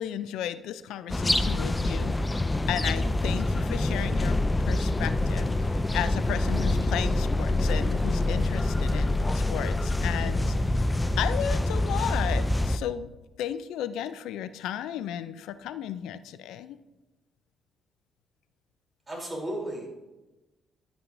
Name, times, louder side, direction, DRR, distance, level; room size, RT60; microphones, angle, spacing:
voice 1, 0.0-10.6 11.2-13.1 13.4-16.8, left 10 dB, 90° left, 13 dB, 0.3 m, -34 dB
sound 1, 1.1-12.8, left 2 dB, 15° left, 0.4 m, -26 dB
voice 2, 19.1-19.9, right 1 dB, 25° right, -2 dB, 3.3 m, -34 dB
11.0 x 8.7 x 2.6 m, 1.1 s
cardioid pair, 90°, 0 cm